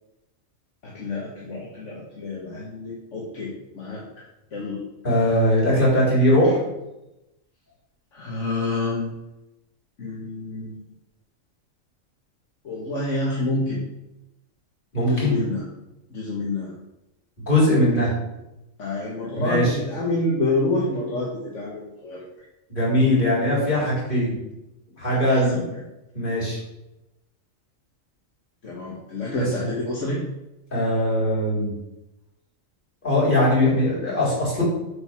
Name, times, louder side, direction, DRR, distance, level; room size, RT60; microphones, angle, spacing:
voice 1, 0.8-4.0 4.5-4.8 8.1-9.1 10.0-10.7 12.6-13.8 15.1-15.6 16.1-16.7 18.8-22.2 25.1-25.8 28.6-30.2, left 2 dB, 65° left, -4 dB, 1.9 m, -28 dB
voice 2, 5.0-6.6 14.9-15.4 17.5-18.1 19.4-19.8 22.7-24.4 25.0-25.6 26.1-26.6 29.3-29.5 30.7-31.7 33.0-34.6, left 1 dB, 40° left, -6 dB, 4.1 m, -20 dB
7.9 x 5.6 x 5.9 m, 0.93 s
omnidirectional pair, 1.4 m